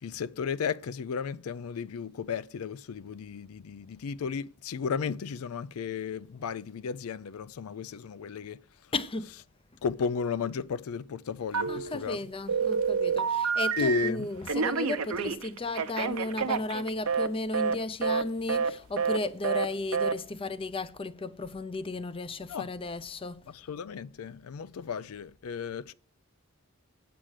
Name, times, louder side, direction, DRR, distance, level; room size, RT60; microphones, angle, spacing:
voice 1, 0.0-8.9 9.8-12.2 13.8-14.3 22.5-22.7 23.5-25.9, left 6 dB, 75° left, 0.4 m, -34 dB
voice 2, 8.9-9.3 11.7-23.5, left 2 dB, 25° left, 0.6 m, -34 dB
Telephone, 11.5-12.1 12.5-14.1 14.5-17.3 17.5-17.8 18.0-18.2 18.5-18.7 19.0-19.2 19.4-19.7 19.9-20.1, right 5 dB, 80° right, 0.9 m, -28 dB
8.7 x 7.6 x 6.5 m
head